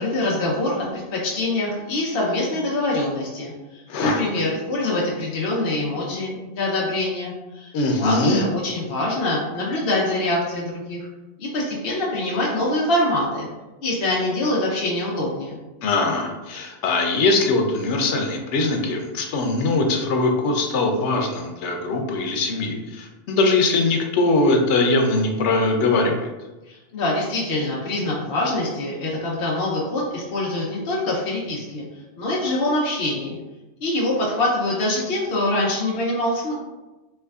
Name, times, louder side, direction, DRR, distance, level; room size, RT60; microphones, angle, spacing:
voice 1, 0.0-7.7 8.0-11.1 11.4-13.5 13.8-15.6 26.7-31.8 32.2-33.4 33.8-36.5, left 1 dB, 60° left, -4 dB, 0.9 m, -24 dB
voice 2, 3.9-4.3 7.7-8.4 15.8-26.3, left 2 dB, 90° left, 3 dB, 0.9 m, -21 dB
3.3 x 3.1 x 2.3 m, 1.1 s
omnidirectional pair, 1.2 m